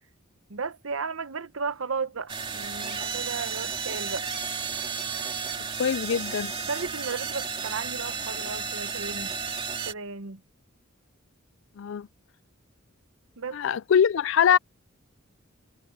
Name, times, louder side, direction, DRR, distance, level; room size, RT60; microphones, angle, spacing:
voice 1, 0.5-4.3 6.6-9.3 9.8-10.4 13.4-13.6, right 4 dB, 75° right, 0.9 m, -34 dB
sound 1, 2.3-9.9, right 5 dB, 25° right, 2.9 m, -33 dB
voice 2, 5.8-6.5 11.8-12.1 13.5-14.6, left 8 dB, 65° left, 0.3 m, -23 dB
head